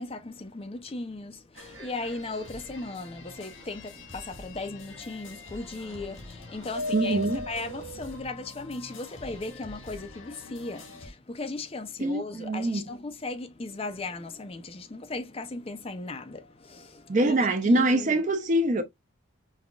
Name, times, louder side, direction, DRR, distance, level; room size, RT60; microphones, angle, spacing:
voice 1, 0.0-18.2, left 3 dB, 30° left, 0.5 m, -37 dB
sound 1, 1.6-11.1, left 3 dB, 80° left, 1.8 m, -46 dB
sound 2, 1.6-4.2 4.9-8.2, left 2 dB, 70° right, 0.9 m, -39 dB
voice 2, 6.9-7.4 12.0-12.8 17.1-18.8, right 1 dB, 40° right, 0.5 m, -24 dB
5.4 x 2.3 x 2.3 m
head